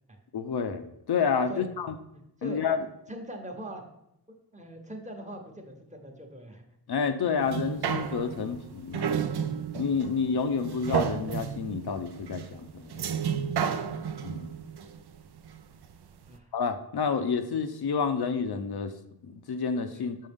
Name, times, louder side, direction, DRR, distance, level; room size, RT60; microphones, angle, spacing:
voice 1, 0.3-2.0 2.4-2.9 6.9-9.1 9.8-13.0 14.2-14.5 16.5-18.9 19.2-20.2, left 5 dB, 70° left, 8 dB, 0.6 m, -29 dB
voice 2, 2.1-2.6 3.1-3.8 4.5-6.6 16.3-16.5 19.9-20.1, equal, 20° right, 2 dB, 1.0 m, -42 dB
sound 1, 7.4-15.9 16.4-16.5, right 7 dB, 75° right, 0.6 m, -32 dB
7.3 x 5.5 x 3.5 m, 0.83 s
wide cardioid pair, 135°, 40 cm